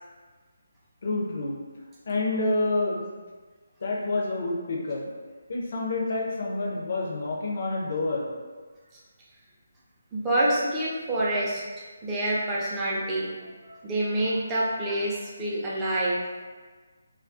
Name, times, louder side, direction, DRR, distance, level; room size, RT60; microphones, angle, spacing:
voice 1, 1.0-1.6 2.1-3.1 3.8-5.1 5.5-8.3, left 2 dB, 50° left, -2 dB, 0.5 m, -28 dB
voice 2, 10.1-11.6 12.0-13.3 13.6-16.3, right 1 dB, 15° right, -7 dB, 0.5 m, -27 dB
2.2 x 2.2 x 2.5 m, 1.4 s
figure-of-eight pair, 150°, 0 cm